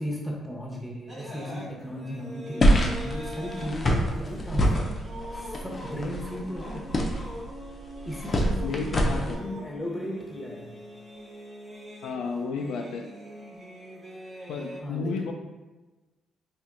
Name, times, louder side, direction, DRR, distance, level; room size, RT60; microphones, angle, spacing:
voice 1, 0.0-4.9 5.3-6.8 8.0-10.7 14.8-15.3, equal, 5° left, -2 dB, 0.9 m, -36 dB
sound 1, 1.1-14.8, equal, 35° right, 1.1 m, -43 dB
sound 2, 2.6-9.3, equal, 35° left, 0.5 m, -26 dB
voice 2, 8.6-9.4 12.0-13.0 14.5-15.3, left 4 dB, 85° left, 2 dB, 0.3 m, -32 dB
4.3 x 2.7 x 2.5 m, 1.2 s
cardioid pair, 90°, 0 cm